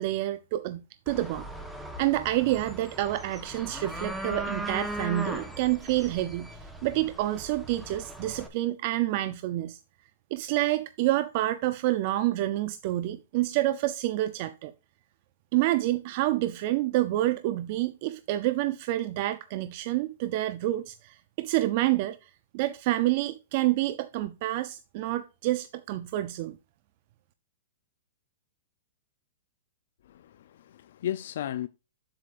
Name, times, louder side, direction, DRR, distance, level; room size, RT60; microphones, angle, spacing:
voice 1, 0.0-1.5 2.0-9.8 10.3-14.7 15.5-26.6, right 15 dB, 45° right, 0.5 m, -28 dB
sound 1, 1.1-8.5, right 1 dB, ahead, 1.1 m, -38 dB
voice 2, 30.1-31.7, left 11 dB, 65° left, 0.5 m, -35 dB
8.3 x 7.7 x 2.5 m
hypercardioid pair, 145°, 0 cm